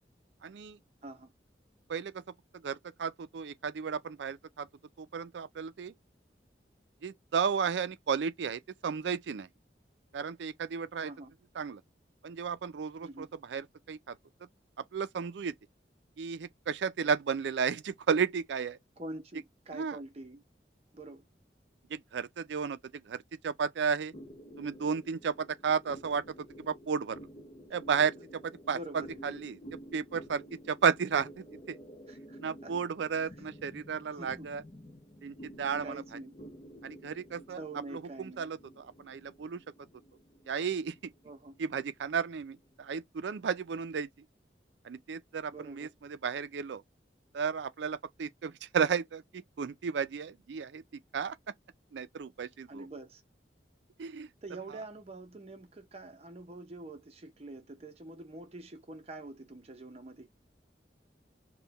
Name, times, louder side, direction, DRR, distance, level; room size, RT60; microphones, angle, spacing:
voice 1, 0.4-0.8 1.9-2.2 2.5-4.7 5.0-5.9 7.0-9.5 10.1-11.1 11.6-11.8 12.2-14.2 14.8-15.5 16.2-18.8 19.7-20.0 21.9-24.1 24.6-27.2 27.7-28.8 29.2-29.6 29.9-31.8 32.4-34.6 35.2-36.0 36.8-37.6 37.9-39.6 40.5-41.1 41.6-44.1 44.8-46.8 47.3-50.8 51.1-51.4 51.9-52.9 54.0-54.3, right 6 dB, 85° right, 0.4 m, -33 dB
voice 2, 1.0-1.3 11.0-11.3 13.0-13.3 19.0-20.4 20.9-21.3 28.7-29.2 32.1-32.7 34.1-34.5 35.8-36.3 37.5-38.5 41.2-41.6 45.5-45.9 52.7-53.2 54.4-60.3, right 2 dB, 35° right, 0.7 m, -45 dB
sound 1, 24.1-42.9, equal, 35° left, 0.6 m, -51 dB
3.8 x 2.2 x 4.0 m
head